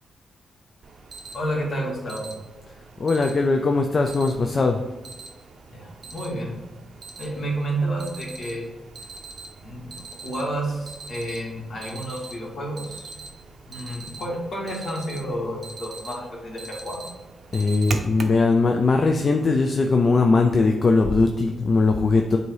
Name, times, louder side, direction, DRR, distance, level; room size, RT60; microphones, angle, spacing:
Alarm, 0.8-18.4, right 3 dB, 50° right, 0.6 m, -41 dB
voice 1, 1.3-2.3 5.7-6.5 7.2-8.7 9.6-9.9 10.2-13.1 13.7-17.1, right 1 dB, 60° left, -3 dB, 1.9 m, -30 dB
voice 2, 3.0-4.8 17.5-22.4, left 3 dB, 40° left, 3 dB, 0.4 m, -20 dB
7.8 x 2.8 x 4.7 m, 1.2 s
cardioid pair, 105°, 0 cm